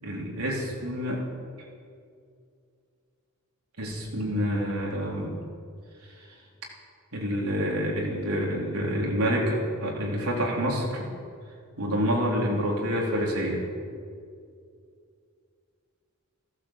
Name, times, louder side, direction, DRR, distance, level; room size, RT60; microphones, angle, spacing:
voice 1, 0.0-1.3 3.8-5.3 7.1-11.1 11.8-13.7, equal, 90° right, -2 dB, 3.8 m, -27 dB
16.0 x 12.0 x 7.6 m, 2.3 s
head